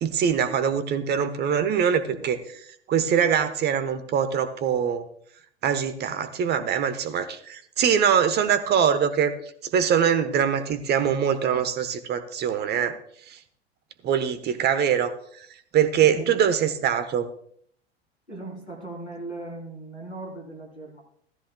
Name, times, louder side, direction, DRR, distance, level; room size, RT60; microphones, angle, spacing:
voice 1, 0.0-2.4 2.9-5.1 5.6-9.3 9.6-13.0 13.3-13.4 14.0-15.1 15.7-17.3, right 8 dB, 30° right, 11 dB, 1.1 m, -23 dB
voice 2, 2.9-3.3 16.0-16.4 18.3-21.0, right 2 dB, 90° left, 0 dB, 3.5 m, -39 dB
15.5 x 13.5 x 2.3 m, 0.65 s
figure-of-eight pair, 80°, 33 cm